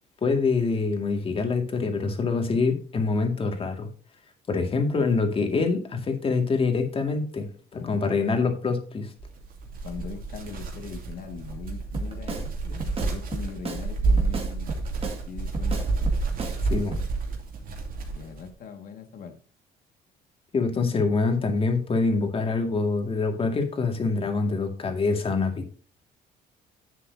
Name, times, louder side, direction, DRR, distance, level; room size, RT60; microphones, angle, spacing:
voice 1, 0.2-3.9 4.5-9.1 16.7-17.0 20.5-25.8, left 4 dB, 35° left, 4 dB, 2.1 m, -25 dB
voice 2, 7.7-8.4 9.8-14.8 15.3-16.2 18.1-19.4, left 6 dB, 55° left, 5 dB, 1.9 m, -41 dB
sound 1, 9.2-18.5, right 3 dB, 60° right, 2.8 m, -30 dB
Drum kit, 11.9-12.5 12.8-13.8 14.2-15.2 15.5-16.6 16.9-17.1, right 3 dB, 35° right, 2.1 m, -33 dB
10.5 x 7.5 x 2.7 m, 0.42 s
cardioid pair, 110°, 17 cm